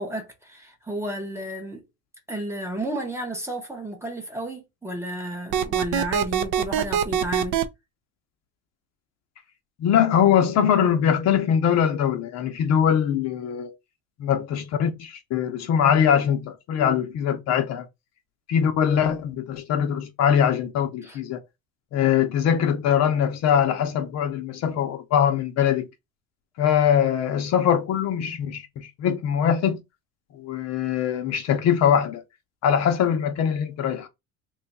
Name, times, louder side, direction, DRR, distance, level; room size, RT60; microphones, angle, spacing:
voice 1, 0.0-1.8 2.3-7.6 21.0-21.2, right 1 dB, 10° right, 0.6 m, -32 dB
sound 1, 5.5-7.6, right 8 dB, 60° right, 0.5 m, -23 dB
voice 2, 9.8-13.7 14.2-17.9 18.5-21.4 21.9-25.9 26.6-29.8 30.3-32.2 32.6-34.1, left 8 dB, 50° left, 0.6 m, -22 dB
3.0 x 2.3 x 4.0 m
cardioid pair, 145°, 35 cm